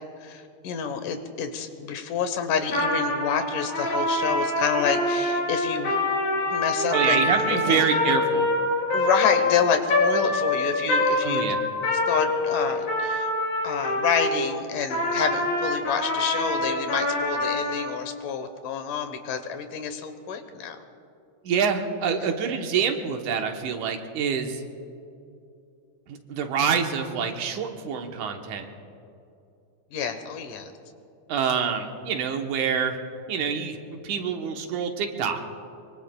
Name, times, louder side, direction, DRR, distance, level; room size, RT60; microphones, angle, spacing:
voice 1, 0.2-6.0 6.5-7.8 8.9-11.4 12.1-13.3 13.6-20.8 29.9-30.7, left 7 dB, 90° left, 8 dB, 2.7 m, -28 dB
Trumpet, 2.6-14.4 14.9-17.9, left 2 dB, 70° left, 5.1 m, -25 dB
voice 2, 6.9-8.5 11.2-11.6 21.4-24.6 26.1-28.7 31.3-33.0 33.3-35.4, right 6 dB, 75° right, 4 dB, 2.5 m, -26 dB
24.0 x 23.0 x 2.3 m, 2.6 s
omnidirectional pair, 3.6 m